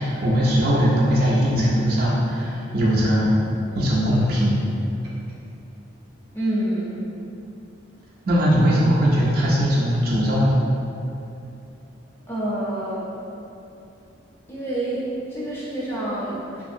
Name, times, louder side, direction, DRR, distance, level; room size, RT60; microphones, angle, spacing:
voice 1, 0.0-3.3 3.8-4.6 8.3-10.6, equal, 50° right, -6 dB, 0.3 m, -20 dB
voice 2, 6.3-7.1 12.3-13.0 14.5-16.6, right 1 dB, 15° left, -9 dB, 0.6 m, -27 dB
2.6 x 2.4 x 2.6 m, 2.7 s
head